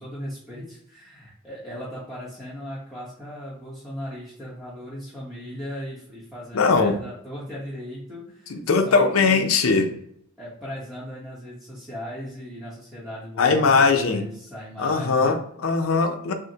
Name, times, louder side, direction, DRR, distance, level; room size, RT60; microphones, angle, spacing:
voice 1, 0.0-9.5 10.4-15.4, equal, ahead, -9 dB, 0.9 m, -37 dB
voice 2, 6.5-7.0 8.5-9.9 13.4-14.2 14.8-16.3, left 4 dB, 80° left, 6 dB, 0.6 m, -20 dB
6.1 x 2.1 x 2.8 m, 0.72 s
head